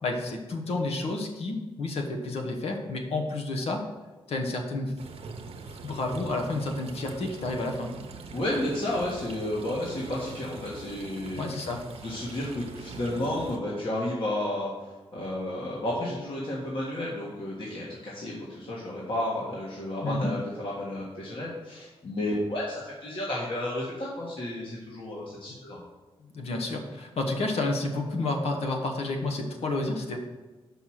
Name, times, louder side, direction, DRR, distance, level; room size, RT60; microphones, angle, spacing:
voice 1, 0.0-3.8 4.3-4.9 5.8-7.9 11.4-11.8 20.0-20.3 26.3-30.2, left 2 dB, 90° left, 3 dB, 1.1 m, -30 dB
sound 1, 5.0-13.6, right 4 dB, 75° right, 0.8 m, -43 dB
voice 2, 8.3-11.7 12.0-25.8, left 1 dB, 60° left, -6 dB, 1.7 m, -32 dB
5.9 x 5.4 x 6.4 m, 1.2 s
wide cardioid pair, 110°, 10 cm